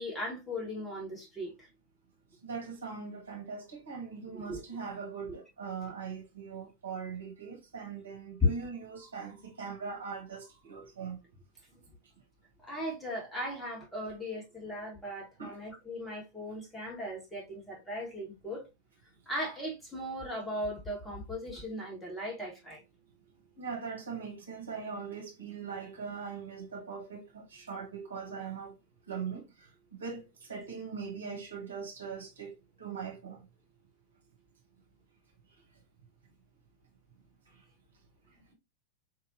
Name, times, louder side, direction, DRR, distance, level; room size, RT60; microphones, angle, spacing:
voice 1, 0.0-1.7 4.3-4.6 8.4-8.5 12.6-18.7 19.3-22.8, left 2 dB, 5° left, 1.8 m, -36 dB
voice 2, 2.4-11.2 15.4-15.6 23.6-28.7 29.1-29.7 30.0-33.5 37.5-37.6, right 6 dB, 70° right, 1.2 m, -41 dB
4.5 x 2.9 x 2.7 m
figure-of-eight pair, 90°, 0 cm